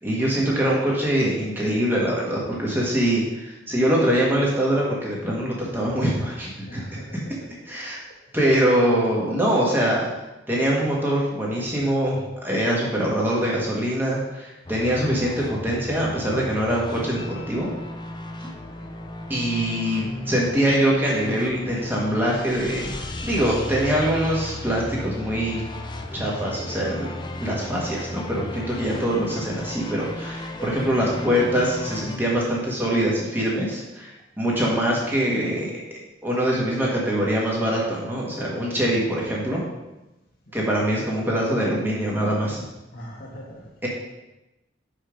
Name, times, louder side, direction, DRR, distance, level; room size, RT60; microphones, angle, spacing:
voice 1, 0.0-7.2 7.7-8.0 8.3-10.2 10.5-17.7 18.4-18.5 19.3-25.6 26.1-35.8 36.2-39.6 40.5-42.6 43.8-43.9, equal, 10° right, -4 dB, 1.5 m, -23 dB
voice 2, 6.7-7.5 8.3-8.4 18.6-18.9 40.4-40.7 42.9-43.7, equal, 50° left, -2 dB, 1.4 m, -42 dB
sound 1, 14.7-32.2, left 1 dB, 25° left, 0.5 m, -35 dB
5.5 x 5.4 x 5.1 m, 0.98 s
head